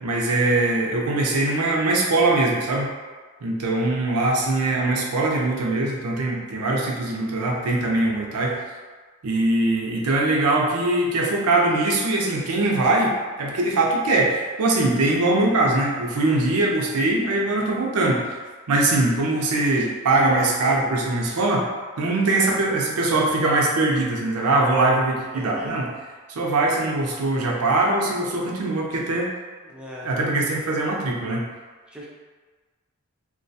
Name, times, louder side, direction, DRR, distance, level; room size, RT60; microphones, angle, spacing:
voice 1, 0.0-2.9 3.4-8.6 9.2-18.4 18.7-21.7 22.0-26.0 26.3-29.3 30.0-31.5, right 2 dB, 85° right, -1 dB, 0.5 m, -22 dB
voice 2, 25.3-25.7 29.7-30.1 31.9-32.1, equal, 5° right, -5 dB, 0.4 m, -38 dB
2.3 x 2.2 x 2.6 m, 1.4 s
head